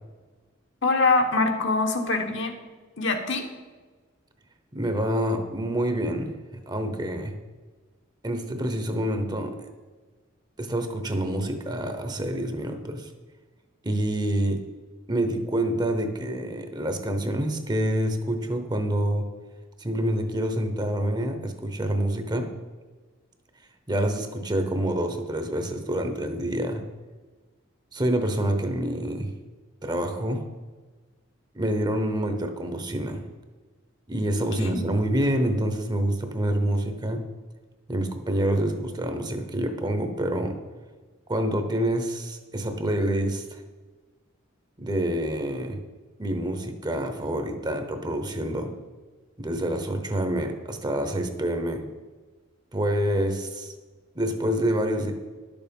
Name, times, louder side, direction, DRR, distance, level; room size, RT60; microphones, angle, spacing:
voice 1, 0.8-2.5 3.0-3.4 34.5-34.8, left 3 dB, 60° left, 4 dB, 1.2 m, -24 dB
voice 2, 4.7-6.3 6.7-7.4 8.2-9.7 10.6-13.1 13.8-14.6 15.1-19.3 19.8-22.5 23.9-26.9 27.9-29.3 29.8-30.4 31.5-33.2 34.1-37.3 37.9-40.6 41.3-43.6 44.8-45.8 46.2-48.7 49.4-51.8 52.7-53.7 54.1-55.1, right 1 dB, 20° right, 6 dB, 0.9 m, -27 dB
11.5 x 7.0 x 5.3 m, 1.3 s
head